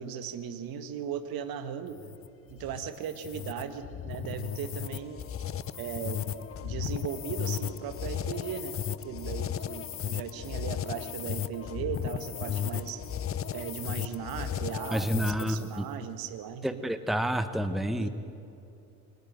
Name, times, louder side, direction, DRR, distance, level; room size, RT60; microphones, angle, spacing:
voice 1, 0.0-2.0 2.5-5.2 5.8-6.3 6.6-13.0 13.5-16.8 18.0-18.1, right 8 dB, 50° right, 10 dB, 1.8 m, -37 dB
sound 1, 1.9-15.7, left 9 dB, 30° left, 0.9 m, -35 dB
voice 2, 14.9-15.9 16.6-18.1, equal, ahead, 11 dB, 1.2 m, -29 dB
23.5 x 18.5 x 9.1 m, 2.7 s
figure-of-eight pair, 60°, 44 cm